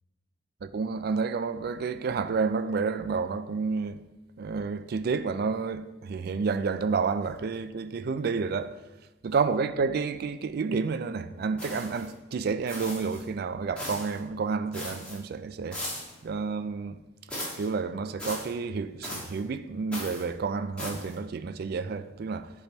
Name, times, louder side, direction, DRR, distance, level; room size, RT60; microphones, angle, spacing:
voice 1, 0.6-4.0 4.4-8.8 9.2-15.8 16.2-17.0 17.6-22.5, right 5 dB, 50° right, 0.3 m, -30 dB
sound 1, 11.6-12.1 12.7-13.2 13.8-14.2 14.7-15.2 15.7-16.2 17.3-17.7 18.2-18.5 19.0-19.4 19.9-20.2 20.8-21.1, equal, 5° left, 1.5 m, -37 dB
8.1 x 3.4 x 4.5 m
head